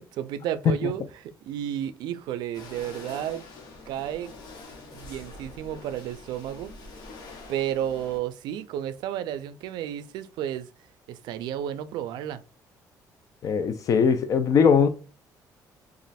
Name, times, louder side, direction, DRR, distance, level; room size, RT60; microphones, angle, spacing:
voice 1, 0.0-3.4 3.9-4.3 4.9-6.7 7.5-10.7 11.1-12.4, right 10 dB, 80° right, 0.4 m, -32 dB
sound 1, 2.5-8.2, left 3 dB, 70° left, 1.2 m, -45 dB
voice 2, 13.4-14.9, left 6 dB, 50° left, 0.5 m, -20 dB
3.0 x 2.4 x 4.1 m
cardioid pair, 120°, 7 cm